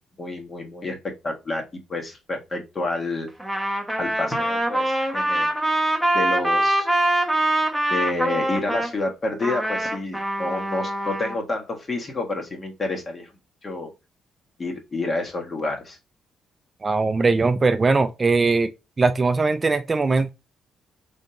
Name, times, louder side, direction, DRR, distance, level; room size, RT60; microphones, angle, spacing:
voice 1, 0.2-3.3 4.0-5.5 5.8-6.9 7.9-13.3 13.6-13.9 14.6-16.0, left 2 dB, 35° left, 1.4 m, -29 dB
Trumpet, 3.4-8.9 9.4-11.4, right 1 dB, 5° left, 1.0 m, -24 dB
voice 2, 16.8-18.7 19.0-20.3, right 3 dB, 30° right, 0.4 m, -20 dB
3.5 x 3.5 x 2.7 m
cardioid pair, 90°, 0 cm